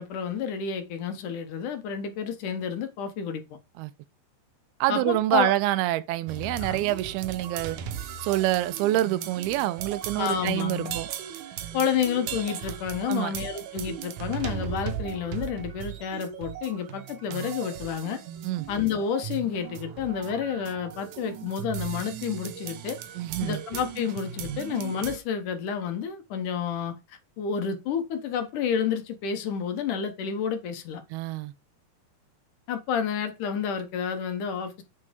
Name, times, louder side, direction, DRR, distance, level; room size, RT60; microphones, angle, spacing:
voice 1, 0.0-3.4 4.9-5.5 6.6-6.8 10.1-11.0 11.7-18.2 18.7-23.0 23.4-31.0 32.7-34.8, left 7 dB, 65° left, 2.4 m, -30 dB
voice 2, 4.8-7.8 8.2-11.1 13.1-13.3 18.4-18.7 23.2-23.6 31.1-31.5, right 15 dB, 85° right, 2.6 m, -26 dB
sound 1, 6.3-25.2, right 9 dB, 70° right, 2.2 m, -37 dB
8.6 x 4.7 x 5.2 m
omnidirectional pair, 4.5 m